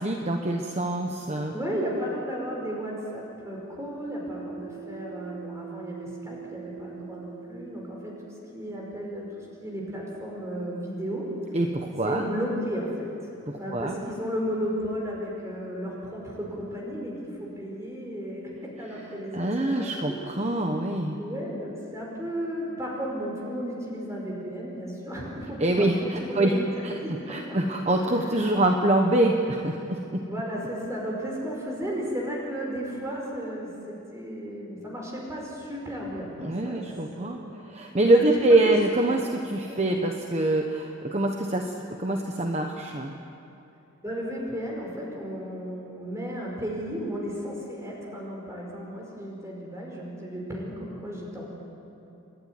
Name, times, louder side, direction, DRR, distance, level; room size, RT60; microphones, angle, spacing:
voice 1, 0.0-1.5 11.5-12.3 13.5-13.9 19.3-21.2 25.6-26.9 27.3-30.2 36.4-37.4 37.7-41.7 42.0-43.1, right 1 dB, 30° right, 2 dB, 1.1 m, -25 dB
voice 2, 1.3-8.2 8.5-9.3 9.6-11.3 12.0-13.1 13.6-20.2 21.2-27.6 29.7-36.9 37.2-37.4 37.8-37.9 38.2-38.7 39.6-39.8 44.0-51.4, equal, 15° right, -3 dB, 5.0 m, -34 dB
sound 1, 3.1-13.5 14.4-18.1, right 9 dB, 40° left, 5.2 m, -48 dB
29.0 x 11.5 x 9.6 m, 2.9 s
head